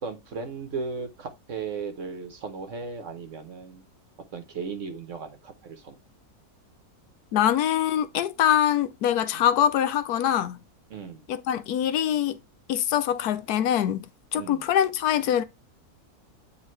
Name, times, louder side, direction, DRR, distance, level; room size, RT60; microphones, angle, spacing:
voice 1, 0.0-3.8 4.3-6.0 9.3-9.4 10.9-11.3 14.4-14.7, right 5 dB, 55° right, 1.4 m, -36 dB
voice 2, 7.3-10.6 11.3-12.4 12.7-15.4, left 10 dB, 90° left, 1.2 m, -24 dB
9.3 x 3.6 x 3.2 m
omnidirectional pair, 1.6 m